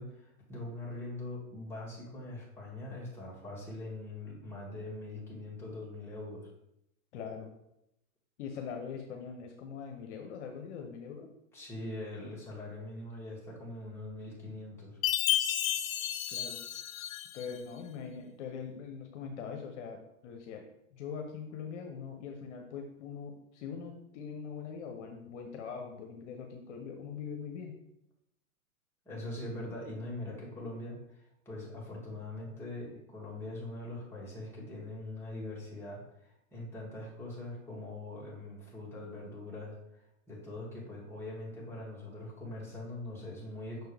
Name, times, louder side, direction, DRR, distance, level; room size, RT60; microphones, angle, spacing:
voice 1, 0.0-6.5 11.5-15.0 29.1-43.9, left 2 dB, 5° left, -7 dB, 2.4 m, -42 dB
voice 2, 7.1-7.5 8.4-11.3 16.3-16.6 17.3-20.0 20.2-20.6 20.9-27.7, left 6 dB, 60° left, 3 dB, 1.0 m, -42 dB
Chime, 15.0-17.5, left 11 dB, 80° left, 0.6 m, -32 dB
6.2 x 4.6 x 3.4 m, 0.80 s
hypercardioid pair, 120°, 41 cm